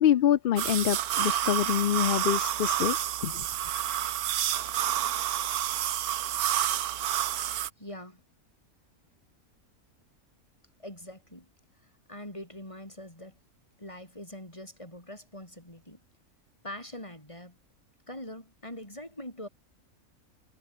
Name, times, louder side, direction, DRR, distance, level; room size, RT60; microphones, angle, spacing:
voice 1, 0.0-3.0 3.2-3.4, left 11 dB, 75° left, 0.5 m, -25 dB
sound 1, 0.6-7.7, right 11 dB, 80° right, 1.3 m, -29 dB
voice 2, 7.8-8.2 10.8-11.5 12.1-13.3 13.8-16.0 16.6-17.6 18.1-19.5, left 1 dB, 20° left, 6.8 m, -43 dB
omnidirectional pair, 1.6 m